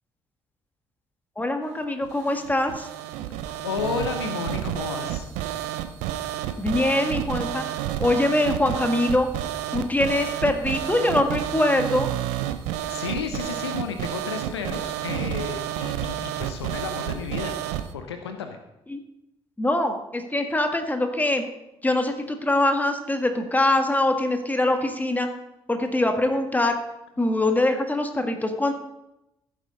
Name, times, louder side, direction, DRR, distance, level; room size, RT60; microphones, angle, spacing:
voice 1, 1.4-2.9 6.6-7.6 8.0-9.3 9.7-12.1 18.9-19.0 19.6-21.4 21.8-25.3 25.7-26.8 27.2-28.7, left 1 dB, 10° left, 5 dB, 1.7 m, -23 dB
sound 1, 2.0-17.9, right 12 dB, 65° right, 0.7 m, -30 dB
voice 2, 3.4-5.3 12.9-17.6 17.9-18.6, left 6 dB, 80° left, 7 dB, 0.8 m, -32 dB
15.0 x 8.5 x 4.0 m, 0.89 s
figure-of-eight pair, 45°, 14 cm